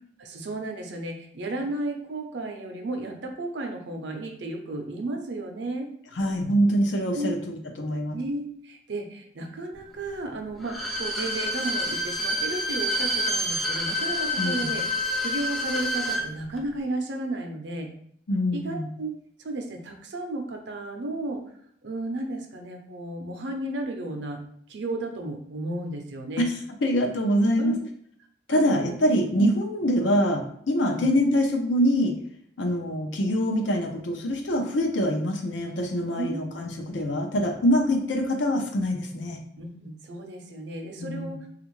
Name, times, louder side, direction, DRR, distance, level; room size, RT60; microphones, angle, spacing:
voice 1, 0.2-5.9 7.1-7.4 8.1-14.8 15.2-17.9 18.5-21.4 21.8-24.4 24.7-26.5 27.6-27.9 28.5-29.0 29.4-29.5 30.9-31.1 36.2-36.4 39.6-41.4, right 2 dB, 70° right, 3 dB, 0.6 m, -33 dB
voice 2, 6.2-8.2 14.4-14.7 18.3-18.9 26.4-26.5 26.8-27.8 28.5-32.1 32.6-39.4 41.0-41.3, equal, 75° left, 3 dB, 0.6 m, -24 dB
Bowed string instrument, 10.6-16.3 16.6-16.7, left 1 dB, ahead, 0.3 m, -28 dB
3.4 x 2.4 x 3.1 m, 0.65 s
head